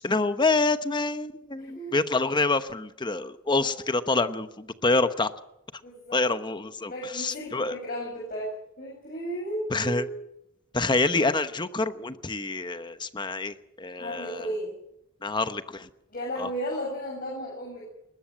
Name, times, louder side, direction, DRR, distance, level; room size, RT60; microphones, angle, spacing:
voice 1, 0.0-5.3 6.1-7.7 9.7-10.1 10.7-14.5 15.2-15.9 16.4-16.5, left 3 dB, 20° left, 11 dB, 1.0 m, -27 dB
voice 2, 1.6-2.0 3.6-3.7 5.8-6.3 6.9-10.2 14.0-14.8 16.1-17.8, equal, 45° left, -2 dB, 7.6 m, -34 dB
21.0 x 20.5 x 7.5 m, 0.82 s
head